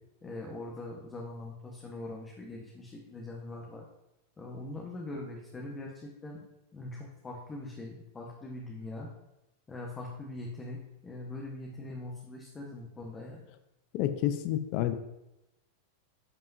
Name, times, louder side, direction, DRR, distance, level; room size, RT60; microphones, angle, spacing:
voice 1, 0.2-3.8 4.4-6.4 6.7-9.1 9.7-10.8 11.0-13.4, left 2 dB, 20° left, -1 dB, 1.2 m, -42 dB
voice 2, 13.9-15.0, left 12 dB, 55° left, 10 dB, 0.6 m, -29 dB
11.0 x 5.4 x 2.7 m, 0.92 s
hypercardioid pair, 110°, 0 cm